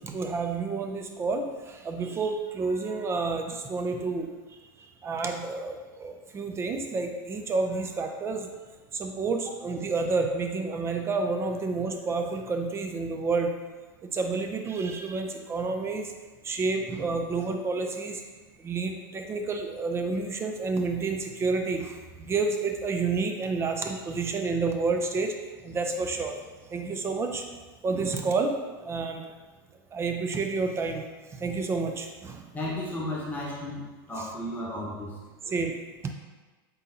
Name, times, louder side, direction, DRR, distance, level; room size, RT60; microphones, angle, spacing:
voice 1, 0.0-8.5 8.9-13.5 14.1-16.1 16.4-18.2 18.6-25.4 25.6-26.4 26.7-27.4 27.8-28.6 28.8-29.2 29.9-31.0 31.3-32.4 34.2-34.3 35.4-35.7, right 4 dB, 20° right, 4 dB, 0.4 m, -29 dB
voice 2, 32.5-35.1, left 1 dB, 15° left, -5 dB, 1.1 m, -34 dB
4.0 x 3.7 x 2.8 m, 1.3 s
hypercardioid pair, 115°, 12 cm